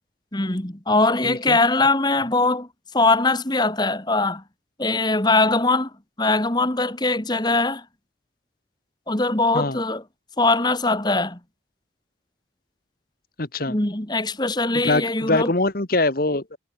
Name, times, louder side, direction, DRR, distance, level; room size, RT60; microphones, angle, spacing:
voice 1, 0.3-2.7 2.9-4.4 4.8-5.9 6.2-7.8 9.1-10.0 10.4-11.4 13.7-15.5, left 2 dB, 25° left, 1.9 m, -21 dB
voice 2, 1.2-1.6 9.5-9.8 13.4-13.7 14.8-16.6, left 2 dB, 50° left, 1.5 m, -23 dB
head